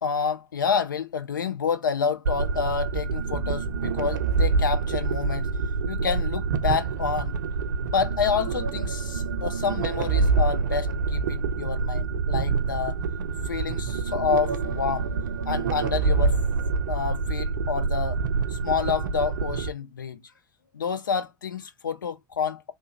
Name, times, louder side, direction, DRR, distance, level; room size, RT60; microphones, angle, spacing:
voice 1, 0.0-5.5 5.9-7.4 7.9-13.0 13.4-15.1 15.5-16.4 16.9-18.2 18.5-20.2 20.7-22.7, left 6 dB, 80° left, 0.5 m, -28 dB
sound 1, 2.2-19.7, right 4 dB, 70° right, 0.4 m, -26 dB
3.2 x 2.1 x 3.1 m
figure-of-eight pair, 80°, 11 cm